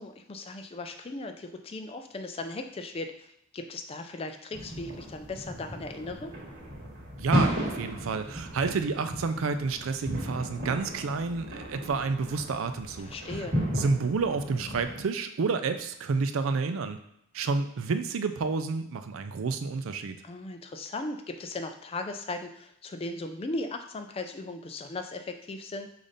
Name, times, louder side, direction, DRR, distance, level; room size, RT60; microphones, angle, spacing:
voice 1, 0.0-3.3 3.5-6.3 13.0-13.6 20.2-25.9, left 2 dB, 30° left, 6 dB, 0.3 m, -37 dB
sound 1, 4.5-15.0, equal, 50° right, 1.5 m, -34 dB
voice 2, 7.2-13.5 13.8-17.0 17.3-20.2, right 4 dB, 80° right, 9 dB, 0.4 m, -30 dB
5.1 x 2.6 x 3.9 m, 0.78 s
head